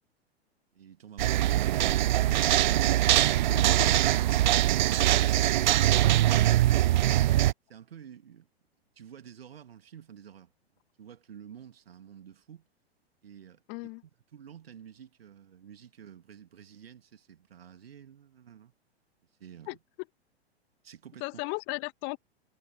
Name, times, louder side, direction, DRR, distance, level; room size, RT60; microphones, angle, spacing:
voice 1, 0.7-2.7 7.7-8.5 9.0-10.5 11.0-12.7 13.2-13.6 14.3-18.7 19.4-19.8 20.8-21.4, right 8 dB, 65° right, 2.9 m, -50 dB
sound 1, 1.2-7.5, right 14 dB, 45° right, 0.4 m, -23 dB
voice 2, 3.5-4.1 5.2-5.3 13.7-14.0 19.7-19.8 21.2-22.2, left 33 dB, 35° left, 1.9 m, -36 dB
figure-of-eight pair, 100°, 32 cm